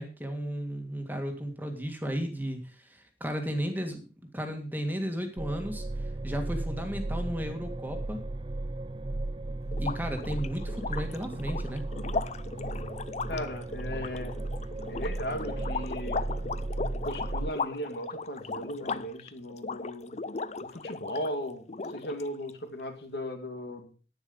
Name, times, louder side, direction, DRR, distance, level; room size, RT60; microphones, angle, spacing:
voice 1, 0.0-4.1 4.3-8.2 9.8-11.8, equal, 10° right, 5 dB, 1.8 m, -34 dB
sound 1, 5.4-17.5, right 2 dB, 30° right, 0.5 m, -35 dB
sound 2, 9.7-21.3 21.7-22.5, left 4 dB, 40° left, 0.6 m, -37 dB
voice 2, 13.3-14.3 14.9-16.2 17.0-20.1 20.6-23.9, equal, 60° left, 6 dB, 2.4 m, -37 dB
11.0 x 9.7 x 5.3 m, 0.36 s
head